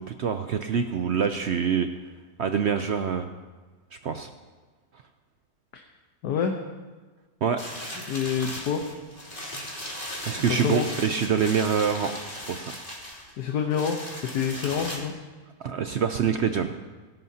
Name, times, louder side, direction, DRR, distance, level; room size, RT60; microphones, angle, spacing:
voice 1, 0.0-1.9 2.4-3.3 4.0-4.3 7.4-7.6 10.3-12.7 15.6-16.7, right 7 dB, 65° right, 8 dB, 0.7 m, -25 dB
voice 2, 6.2-6.5 8.1-8.8 9.4-9.5 10.6-10.9 13.4-14.0 14.3-15.1, left 7 dB, 80° left, 3 dB, 1.5 m, -27 dB
sound 1, 7.6-15.0, left 1 dB, 30° left, 3.1 m, -37 dB
22.0 x 11.5 x 2.8 m, 1.3 s
omnidirectional pair, 1.7 m